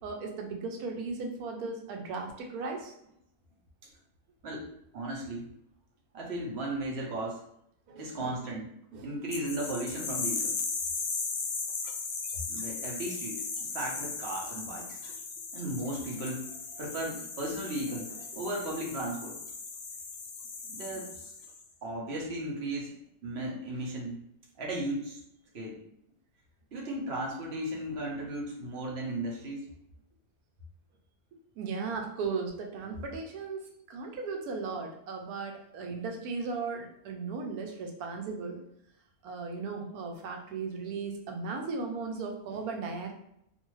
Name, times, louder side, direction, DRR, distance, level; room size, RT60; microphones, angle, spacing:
voice 1, 0.0-2.9 7.9-8.3 8.9-9.1 18.1-18.4 20.9-21.1 31.6-38.6 39.2-43.1, right 4 dB, 90° right, 2 dB, 1.1 m, -37 dB
voice 2, 4.4-5.4 6.1-7.4 7.9-8.7 9.0-10.6 12.5-13.5 13.7-15.0 15.5-16.5 16.8-19.4 20.7-21.3 21.8-22.9 23.2-24.2 24.6-25.2 25.5-25.8 26.7-29.6, right 1 dB, 55° right, -2 dB, 0.9 m, -35 dB
sound 1, 9.3-21.6, left 4 dB, 65° left, 0.8 m, -37 dB
2.6 x 2.4 x 3.0 m, 0.74 s
omnidirectional pair, 1.5 m